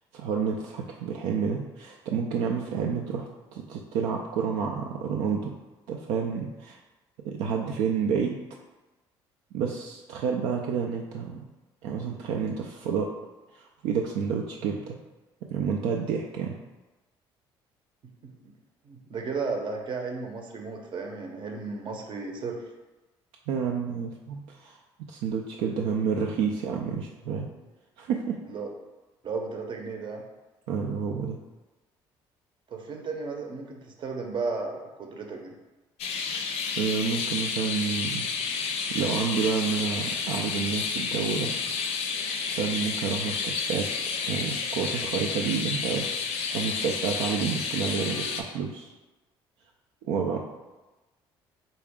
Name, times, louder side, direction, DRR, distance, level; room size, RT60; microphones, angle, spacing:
voice 1, 0.1-5.5 5.9-6.8 7.2-8.4 9.5-11.4 11.8-13.1 13.5-14.9 15.5-16.6 23.5-24.8 25.1-27.5 28.0-28.4 30.7-31.4 36.3-36.5 36.8-38.3 38.7-41.5 42.5-43.9 44.3-48.9 50.0-50.4, right 6 dB, 80° right, 0 dB, 0.4 m, -29 dB
voice 2, 18.8-22.6 28.4-28.7 29.2-30.2 32.7-35.5, right 4 dB, 50° right, 2 dB, 0.7 m, -34 dB
sound 1, 36.0-48.4, left 5 dB, 75° left, 0.5 m, -30 dB
3.9 x 2.3 x 3.5 m, 1.1 s
supercardioid pair, 70°, 11 cm